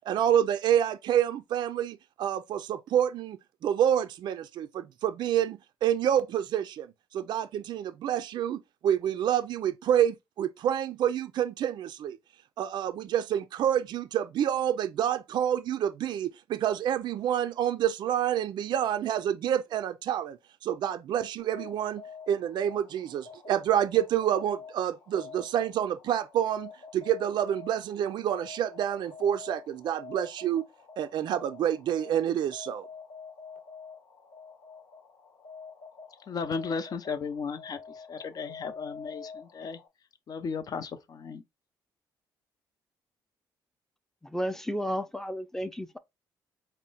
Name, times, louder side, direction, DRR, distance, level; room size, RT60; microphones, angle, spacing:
voice 1, 0.0-3.4 3.6-12.2 12.6-30.6 31.0-32.8, right 10 dB, 65° right, 0.4 m, -28 dB
sound 1, 21.4-39.9, left 5 dB, 75° left, 1.1 m, -47 dB
voice 2, 36.2-39.8 40.3-41.4, left 5 dB, 50° left, 0.7 m, -35 dB
voice 3, 44.3-46.0, equal, 5° left, 0.5 m, -32 dB
4.2 x 2.1 x 3.9 m
cardioid pair, 85°, 8 cm